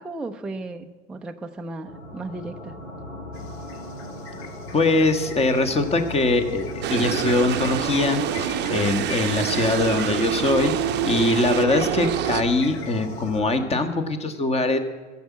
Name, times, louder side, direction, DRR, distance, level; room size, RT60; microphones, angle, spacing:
voice 1, 0.0-2.8, right 2 dB, 5° right, 4 dB, 0.5 m, -35 dB
sound 1, 1.9-13.6, left 1 dB, 80° left, 3.1 m, -37 dB
sound 2, 3.3-13.4, left 7 dB, 55° left, 1.6 m, -42 dB
voice 2, 4.7-14.8, left 2 dB, 15° left, 8 dB, 1.4 m, -22 dB
sound 3, 6.8-12.4, right 11 dB, 30° right, 0.8 m, -26 dB
13.5 x 7.4 x 9.4 m, 1.3 s
hypercardioid pair, 100°, 37 cm